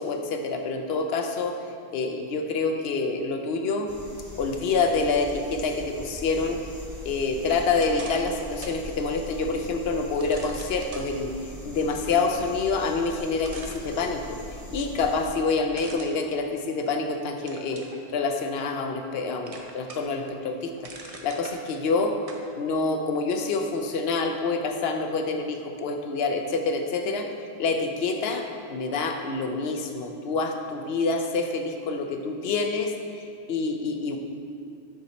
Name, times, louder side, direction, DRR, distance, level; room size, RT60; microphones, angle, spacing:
voice 1, 0.0-1.6 1.9-3.9 4.4-6.6 7.0-11.3 11.6-14.4 14.7-17.9 18.1-20.7 21.0-22.2 22.6-32.9 33.5-34.2, left 4 dB, 70° left, 5 dB, 0.8 m, -27 dB
sound 1, 3.9-15.3, left 1 dB, 20° left, 0.7 m, -41 dB
sound 2, 7.8-8.8 9.3-9.4 10.2-11.1 12.9-13.0 13.4-14.5 15.7-17.0 17.5-18.0 18.5-19.2 19.5-20.2 20.5-21.6 22.3-22.5, right 3 dB, 40° right, 0.6 m, -43 dB
6.7 x 4.9 x 4.1 m, 2.4 s
omnidirectional pair, 1.1 m